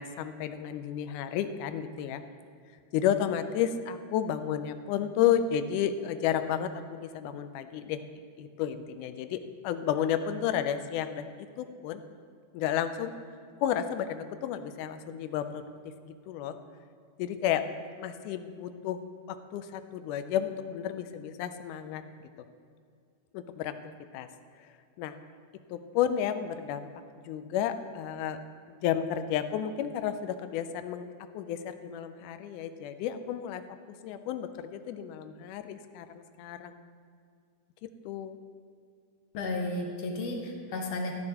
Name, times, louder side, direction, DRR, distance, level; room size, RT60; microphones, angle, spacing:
voice 1, 0.0-2.2 2.9-8.0 8.4-11.2 11.6-12.0 12.5-13.1 13.6-15.6 16.1-16.6 17.2-17.6 18.0-19.0 19.3-22.0 23.3-24.3 25.0-25.2 25.7-26.8 27.3-28.4 28.8-31.1 31.3-33.6 34.0-36.8 37.8-38.4, left 9 dB, 85° left, 10 dB, 2.1 m, -32 dB
voice 2, 39.3-41.1, left 2 dB, 60° left, 1 dB, 2.1 m, -33 dB
14.5 x 10.5 x 2.9 m, 2.2 s
omnidirectional pair, 3.6 m